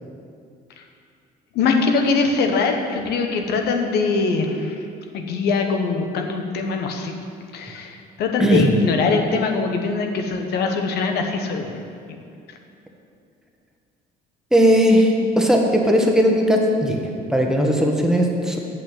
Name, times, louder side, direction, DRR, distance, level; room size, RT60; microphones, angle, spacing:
voice 1, 1.5-4.8 5.1-7.2 7.5-11.7 12.5-12.6, left 4 dB, 75° left, 4 dB, 1.1 m, -22 dB
voice 2, 8.4-8.7 14.5-18.6, equal, 5° right, 0 dB, 1.4 m, -18 dB
8.7 x 6.0 x 7.9 m, 2.4 s
cardioid pair, 110°, 17 cm